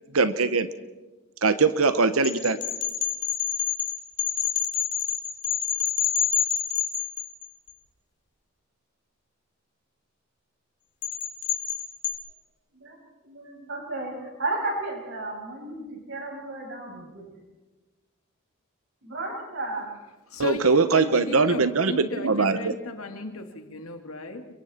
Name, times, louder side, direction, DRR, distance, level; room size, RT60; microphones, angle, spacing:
voice 1, 0.1-0.7 1.4-2.6 20.4-22.7, right 4 dB, 80° right, 11 dB, 1.0 m, -21 dB
sound 1, 2.2-7.7 11.0-12.1, left 10 dB, 55° left, 3.3 m, -27 dB
voice 2, 12.8-17.3 19.0-20.0 21.0-21.1, right 2 dB, 65° right, 0 dB, 7.4 m, -33 dB
voice 3, 20.3-24.5, left 2 dB, 80° left, 6 dB, 2.3 m, -35 dB
30.0 x 23.5 x 4.4 m, 1.2 s
head